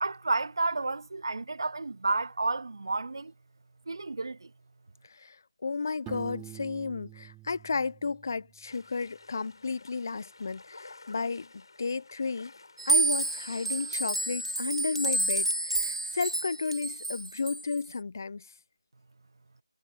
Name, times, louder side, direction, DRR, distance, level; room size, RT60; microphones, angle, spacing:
voice 1, 0.0-3.3 3.9-4.5, right 3 dB, 50° right, 0.7 m, -31 dB
voice 2, 5.6-11.5 11.8-12.5 12.9-18.4, left 4 dB, 40° left, 0.8 m, -33 dB
Piano, 6.1-8.8, right 18 dB, 10° right, 3.3 m, -46 dB
sound 1, 8.6-14.0, left 3 dB, 55° left, 6.1 m, -53 dB
sound 2, 12.8-17.8, right 2 dB, 85° right, 3.3 m, -29 dB
figure-of-eight pair, 165°, 3 cm